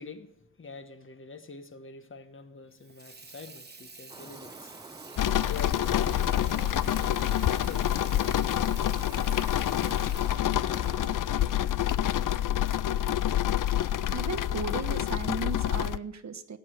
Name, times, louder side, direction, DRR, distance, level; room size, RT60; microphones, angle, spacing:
voice 1, 0.0-4.8 5.4-9.5, left 4 dB, 40° left, 1.3 m, -45 dB
Water tap faucet / Sink (filling or washing), 2.7-12.3, right 4 dB, 30° right, 1.3 m, -49 dB
sound 1, 4.1-11.2, right 2 dB, 15° right, 0.8 m, -47 dB
sound 2, 5.2-16.0, left 11 dB, 80° left, 0.5 m, -27 dB
voice 2, 13.8-16.6, right 5 dB, 60° right, 1.1 m, -36 dB
17.0 x 9.2 x 6.5 m
wide cardioid pair, 165°, 31 cm